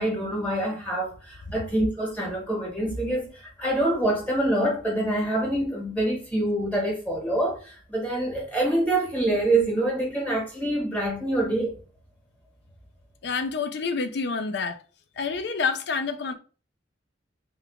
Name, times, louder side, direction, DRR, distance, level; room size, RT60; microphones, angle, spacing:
voice 1, 0.0-11.8, right 1 dB, 10° left, 1.0 m, -26 dB
voice 2, 13.2-14.8 15.2-16.3, left 5 dB, 60° left, 0.4 m, -28 dB
2.9 x 2.4 x 3.4 m
head